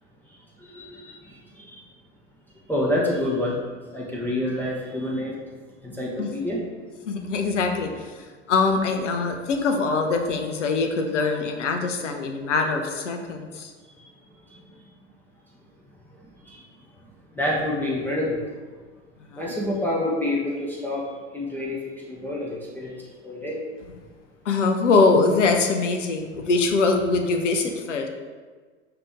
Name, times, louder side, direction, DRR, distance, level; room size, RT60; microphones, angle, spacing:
voice 1, 0.3-1.8 2.7-3.6 3.9-5.4 5.8-6.6 14.3-14.8 16.1-16.7 17.3-18.5 19.4-23.6, left 1 dB, 5° left, -5 dB, 0.7 m, -28 dB
voice 2, 7.1-13.7 19.3-19.5 24.4-28.1, left 4 dB, 80° left, 4 dB, 0.7 m, -23 dB
5.0 x 2.9 x 3.5 m, 1.4 s
figure-of-eight pair, 85°, 36 cm